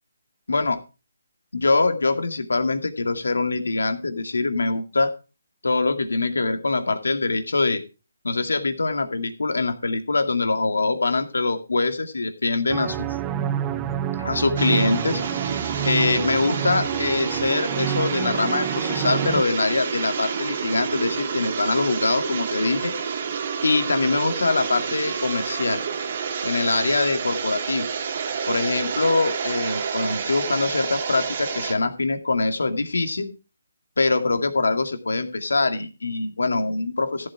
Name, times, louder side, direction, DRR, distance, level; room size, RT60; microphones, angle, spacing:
voice 1, 1.5-5.1 5.6-7.8 8.2-13.1 14.2-15.2 15.8-22.9 23.6-25.8 26.4-27.9 28.5-33.3 34.0-37.3, left 3 dB, 90° left, 7 dB, 2.1 m, -23 dB
sound 1, 12.7-19.4, right 10 dB, 15° right, 0.6 m, -28 dB
sound 2, 14.6-31.7, right 6 dB, 40° right, 1.9 m, -29 dB
14.5 x 7.6 x 4.8 m, 0.32 s
hypercardioid pair, 165°, 0 cm